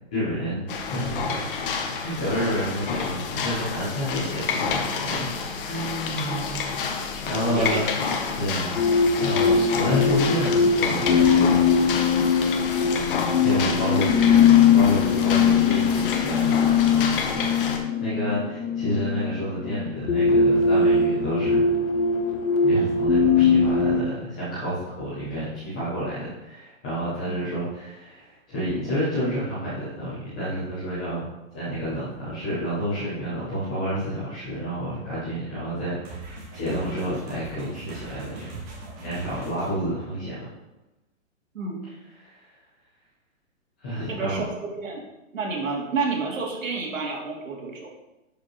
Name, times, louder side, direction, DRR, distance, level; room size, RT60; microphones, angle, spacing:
voice 1, 0.1-1.6 1.9-5.2 5.5-6.9 7.2-8.0 8.4-8.8 9.1-11.6 13.3-14.4 14.7-16.7 16.9-17.5 18.0-21.7 22.6-31.2 31.5-38.6 39.0-40.4 42.2-42.4 43.8-44.4, equal, 5° left, -11 dB, 0.4 m, -29 dB
sound 1, 0.7-17.8, left 5 dB, 40° left, 1.0 m, -29 dB
voice 2, 7.3-7.9 27.3-27.4 41.5-41.8 44.1-45.0 45.3-47.9, right 4 dB, 70° right, -1 dB, 2.6 m, -30 dB
sound 2, 8.8-24.0, left 5 dB, 90° left, 0.8 m, -21 dB
sound 3, 36.0-39.8, right 2 dB, 20° right, 1.4 m, -41 dB
10.5 x 5.1 x 3.0 m, 1.0 s
hypercardioid pair, 155°, 40 cm